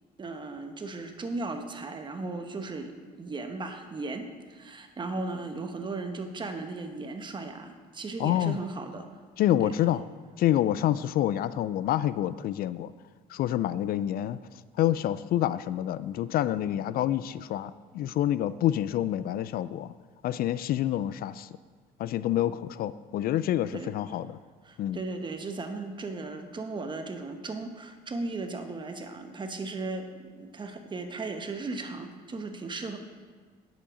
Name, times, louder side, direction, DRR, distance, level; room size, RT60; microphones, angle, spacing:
voice 1, 0.2-9.1 9.6-9.7 23.7-23.9 24.6-33.0, right 3 dB, 30° right, 6 dB, 1.1 m, -36 dB
voice 2, 8.2-8.6 9.4-10.0 10.4-12.9 13.3-14.4 14.8-19.9 20.2-21.5 22.0-24.3 24.8-25.0, left 12 dB, 60° left, 15 dB, 0.4 m, -27 dB
9.7 x 7.4 x 5.0 m, 1.5 s
cardioid pair, 110°, 17 cm